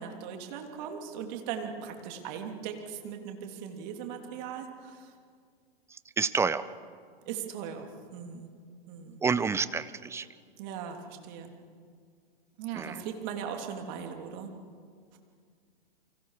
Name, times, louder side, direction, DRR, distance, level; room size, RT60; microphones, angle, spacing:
voice 1, 0.0-5.1 7.2-8.5 8.9-9.2 10.6-11.5 12.6-14.6, right 7 dB, 45° right, 4 dB, 3.2 m, -39 dB
voice 2, 5.9-6.7 9.2-10.3 12.7-13.0, right 5 dB, 10° right, 15 dB, 0.5 m, -29 dB
29.5 x 25.0 x 5.0 m, 2.1 s
hypercardioid pair, 115°, 30 cm